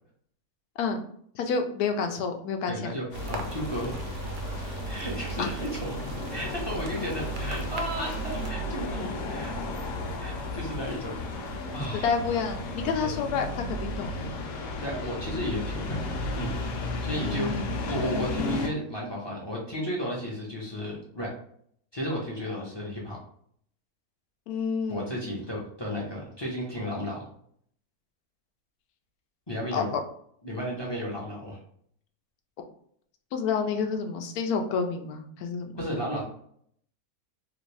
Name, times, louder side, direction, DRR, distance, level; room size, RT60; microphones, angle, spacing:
voice 1, 1.3-2.9 5.4-5.5 11.9-14.2 17.2-17.7 24.5-25.1 29.7-29.9 33.3-35.7, left 5 dB, 85° left, 5 dB, 1.1 m, -29 dB
voice 2, 2.7-3.9 4.6-6.0 6.3-9.6 10.2-12.1 13.0-13.1 14.8-16.0 16.3-16.6 17.0-17.5 17.9-21.3 21.9-23.2 24.9-27.2 29.5-30.0 30.4-31.6 35.8-36.2, equal, 30° left, -4 dB, 0.5 m, -33 dB
sound 1, 3.1-18.7, left 1 dB, 65° left, 1.0 m, -33 dB
sound 2, 3.1-8.5, right 3 dB, 65° right, 0.8 m, -42 dB
3.0 x 2.6 x 3.1 m, 0.65 s
omnidirectional pair, 1.6 m